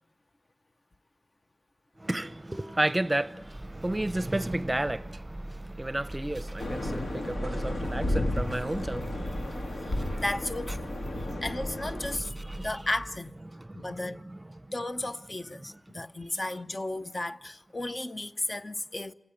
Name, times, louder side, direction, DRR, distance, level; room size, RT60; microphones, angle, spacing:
voice 1, 2.0-10.2 11.0-11.4 12.0-12.9 13.9-14.4, right 1 dB, 25° right, 0.8 m, -33 dB
sound 1, 3.4-13.3, right 1 dB, 10° right, 1.7 m, -41 dB
sound 2, 6.6-12.2, left 1 dB, 80° left, 2.5 m, -33 dB
voice 2, 9.9-10.9 11.4-12.3 12.6-13.3 13.7-14.2 14.7-19.1, left 1 dB, 35° left, 0.8 m, -34 dB
28.0 x 17.0 x 9.1 m
cardioid pair, 50°, 0 cm